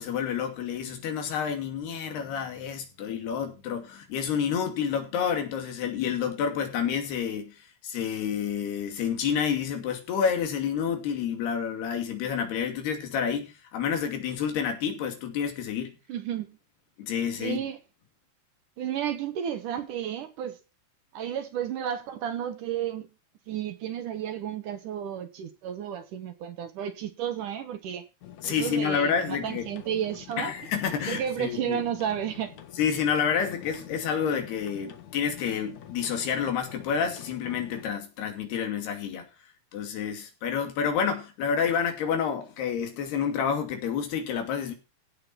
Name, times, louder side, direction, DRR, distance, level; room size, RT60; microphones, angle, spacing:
voice 1, 0.0-7.6 7.8-15.9 17.0-17.6 28.4-29.6 30.4-31.8 32.8-39.3 39.7-44.7, left 7 dB, 80° left, 4.6 m, -29 dB
voice 2, 16.1-16.6 17.4-17.8 18.8-20.6 21.1-23.1 23.5-28.0 28.4-30.5 31.0-32.6, right 9 dB, 65° right, 2.4 m, -32 dB
sound 1, 28.2-38.0, left 10 dB, 55° left, 2.4 m, -47 dB
16.5 x 7.6 x 4.3 m
omnidirectional pair, 4.6 m